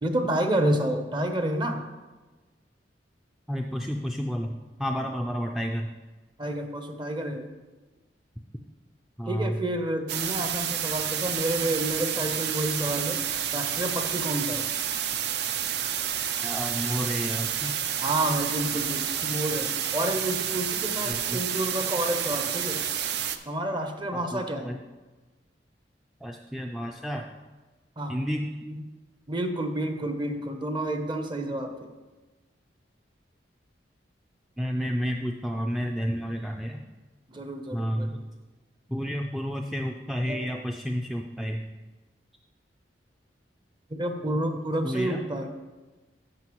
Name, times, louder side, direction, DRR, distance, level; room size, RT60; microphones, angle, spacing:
voice 1, 0.0-1.8 6.4-7.5 9.3-13.2 13.5-14.6 18.0-22.8 23.5-24.7 28.0-28.2 28.7-28.8 29.3-31.9 37.3-38.2 40.3-40.4 43.9-45.5, right 1 dB, 25° right, 6 dB, 0.7 m, -29 dB
voice 2, 3.5-5.9 9.2-9.6 16.4-17.8 21.0-21.4 24.1-24.8 26.2-27.3 28.1-28.5 34.6-36.8 37.7-38.2 38.9-41.7 44.8-45.3, equal, ahead, 1 dB, 0.3 m, -31 dB
sound 1, 10.1-23.4, right 9 dB, 65° right, 0.5 m, -29 dB
13.5 x 5.5 x 3.0 m, 1.2 s
head